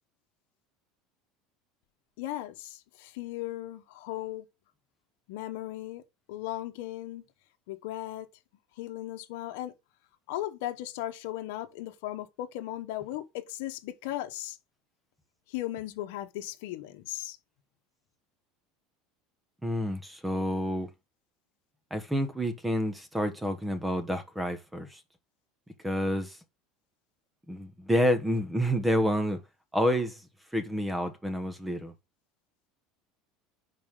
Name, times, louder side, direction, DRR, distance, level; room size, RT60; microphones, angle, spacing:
voice 1, 2.2-4.4 5.3-6.0 6.3-7.2 7.7-8.3 8.8-9.7 10.3-14.6 15.5-17.4, left 14 dB, 75° left, 0.9 m, -37 dB
voice 2, 19.6-20.9 21.9-25.0 25.8-26.4 27.5-29.4 29.7-30.2 30.5-31.9, equal, 5° right, 1.3 m, -29 dB
10.5 x 4.2 x 3.7 m
supercardioid pair, 135°, 0 cm